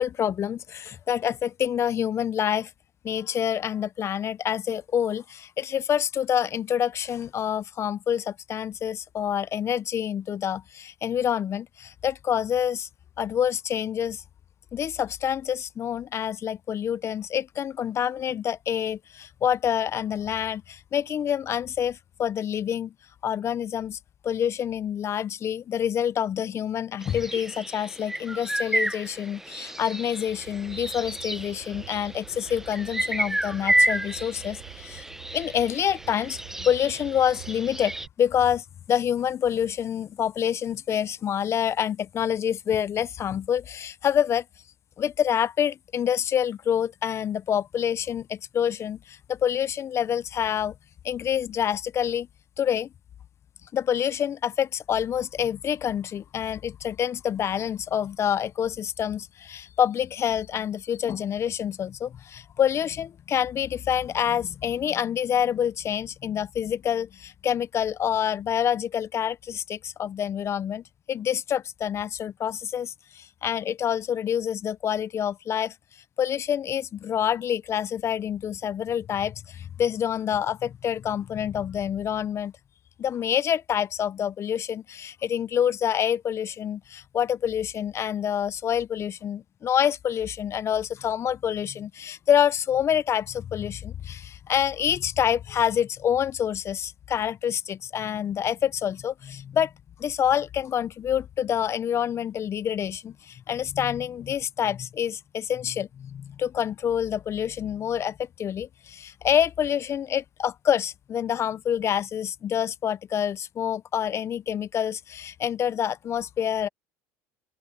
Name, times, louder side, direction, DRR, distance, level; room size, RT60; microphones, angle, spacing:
voice 1, 0.0-2.7 3.0-12.9 13.2-14.2 14.7-22.9 23.2-24.0 24.2-35.0 35.3-44.4 45.0-50.7 51.0-52.3 52.6-52.9 53.7-75.7 76.2-82.5 83.0-99.7 100.0-116.7, left 9 dB, 40° left, 0.6 m, -27 dB
sound 1, 27.0-38.1, right 1 dB, 5° right, 1.0 m, -30 dB
sound 2, 30.3-38.1, right 21 dB, 70° right, 1.8 m, -46 dB
open air
supercardioid pair, 95°, 7 cm